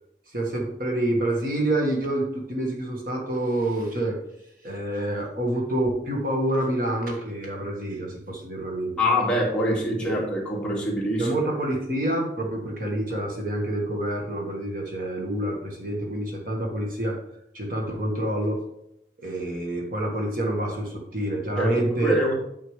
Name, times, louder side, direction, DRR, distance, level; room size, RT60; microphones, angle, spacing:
voice 1, 0.3-4.2 4.6-9.0 10.0-10.2 11.2-17.2 17.5-18.6 19.2-22.2, right 1 dB, 50° right, 0 dB, 1.6 m, -27 dB
voice 2, 9.0-11.3 21.6-22.4, equal, 5° left, -5 dB, 2.2 m, -24 dB
9.5 x 6.5 x 3.3 m, 0.77 s
head